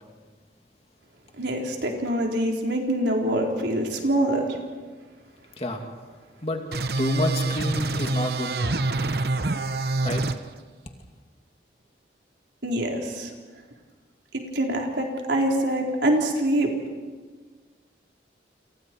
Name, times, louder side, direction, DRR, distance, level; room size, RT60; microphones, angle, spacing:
voice 1, 1.4-4.6 12.6-13.3 14.3-16.7, right 1 dB, 75° right, 0 dB, 4.3 m, -25 dB
sound 1, 6.7-10.4, right 2 dB, 60° right, 1.0 m, -26 dB
voice 2, 7.0-8.5 9.7-9.8 10.0-10.2, left 1 dB, 35° left, 3 dB, 2.5 m, -28 dB
29.5 x 28.0 x 4.7 m, 1.4 s
head